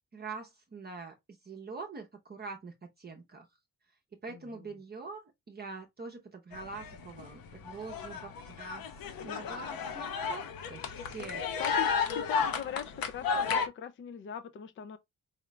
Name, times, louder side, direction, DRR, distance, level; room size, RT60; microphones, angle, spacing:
voice 1, 0.1-1.1 1.4-3.4 4.2-8.8 9.2-11.5, right 4 dB, 30° right, 0.8 m, -44 dB
voice 2, 4.3-4.7 11.2-11.3 11.6-15.0, left 8 dB, 35° left, 0.4 m, -41 dB
sound 1, 6.5-7.3 7.5-13.7, left 6 dB, 80° left, 0.9 m, -33 dB
4.9 x 2.3 x 3.1 m
cardioid pair, 135°, 34 cm